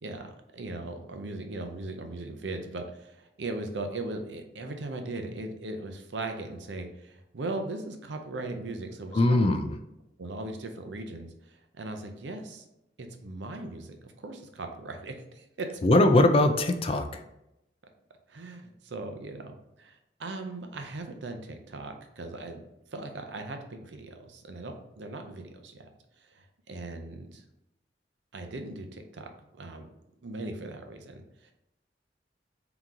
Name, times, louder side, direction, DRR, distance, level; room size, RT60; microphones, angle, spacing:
voice 1, 0.0-9.4 10.2-12.7 13.0-16.1 18.3-25.9 26.3-27.4 28.3-29.3 29.6-29.9 30.2-31.5, right 2 dB, 85° right, 5 dB, 0.6 m, -39 dB
voice 2, 9.1-9.7 15.8-17.2, left 1 dB, 30° left, 7 dB, 0.3 m, -21 dB
3.8 x 2.9 x 3.6 m, 0.85 s
head